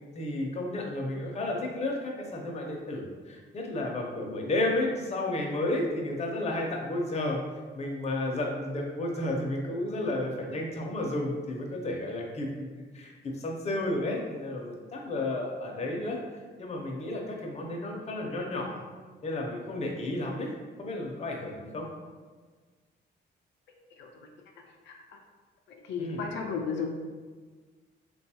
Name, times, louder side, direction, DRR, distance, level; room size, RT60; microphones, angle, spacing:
voice 1, 0.2-7.4 7.7-18.8 19.2-20.5 20.8-21.9 26.0-26.2, left 1 dB, 35° left, 0 dB, 0.6 m, -32 dB
voice 2, 24.9-25.2 25.8-26.9, left 5 dB, 85° left, 1 dB, 0.4 m, -34 dB
3.5 x 2.3 x 2.8 m, 1.4 s
cardioid pair, 115°, 18 cm